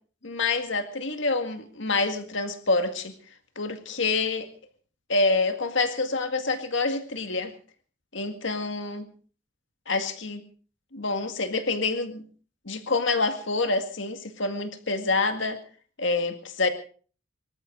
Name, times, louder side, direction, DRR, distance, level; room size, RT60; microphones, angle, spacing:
voice 1, 0.2-3.1 3.6-4.5 5.1-7.5 8.1-9.0 9.9-10.4 10.9-12.2 12.7-15.6 16.0-16.7, left 3 dB, 65° left, 7 dB, 2.1 m, -27 dB
24.5 x 14.0 x 4.0 m, 0.41 s
head